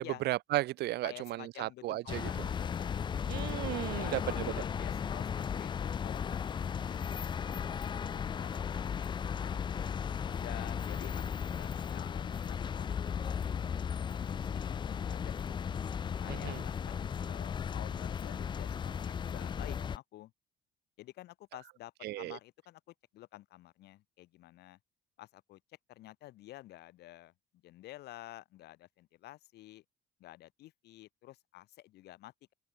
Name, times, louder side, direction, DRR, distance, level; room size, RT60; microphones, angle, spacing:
voice 1, 0.0-2.3 3.3-4.2 16.3-16.6 22.0-22.4, right 16 dB, 75° right, 1.4 m, -34 dB
voice 2, 1.0-3.1 3.9-9.3 10.3-13.8 14.0-15.6 16.2-20.3 21.0-24.8 25.2-25.6 25.9-27.3 27.6-29.8 30.2-32.5, left 16 dB, 75° left, 3.3 m, -51 dB
sound 1, 2.1-20.0, left 7 dB, 25° left, 0.4 m, -36 dB
open air
cardioid pair, 110°, 17 cm